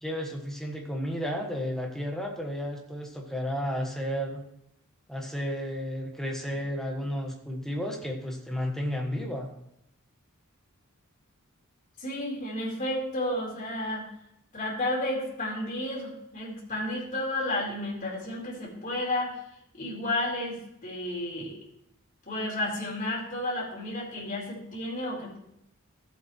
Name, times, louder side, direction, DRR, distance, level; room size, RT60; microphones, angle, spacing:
voice 1, 0.0-4.4 5.1-9.5, equal, ahead, 1 dB, 1.5 m, -32 dB
voice 2, 12.0-14.1 14.5-19.4 19.7-21.6 22.3-25.4, left 1 dB, 40° left, -5 dB, 3.9 m, -32 dB
14.0 x 8.0 x 3.1 m, 0.79 s
head